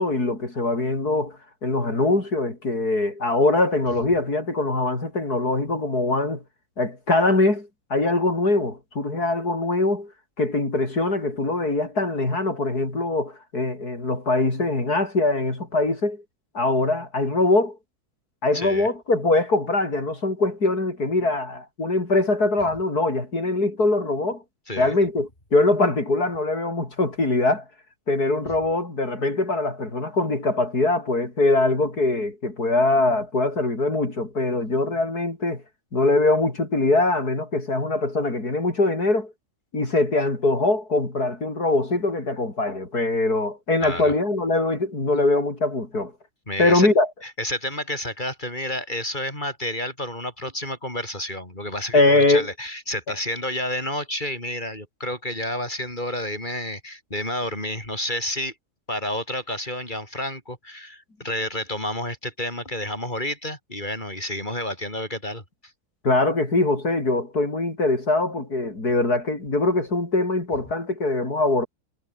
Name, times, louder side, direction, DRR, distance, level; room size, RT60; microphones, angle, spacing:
voice 1, 0.0-6.4 6.8-10.1 10.4-16.2 16.5-17.8 18.4-24.4 24.8-27.6 28.1-35.6 35.9-39.3 39.7-46.1 46.6-47.1 51.9-52.5 66.0-71.7, left 2 dB, 80° left, 6.3 m, -22 dB
voice 2, 18.5-18.9 24.7-25.0 43.8-44.1 46.5-46.9 47.2-58.5 58.9-65.4, left 1 dB, 30° left, 7.0 m, -30 dB
omnidirectional pair, 1.6 m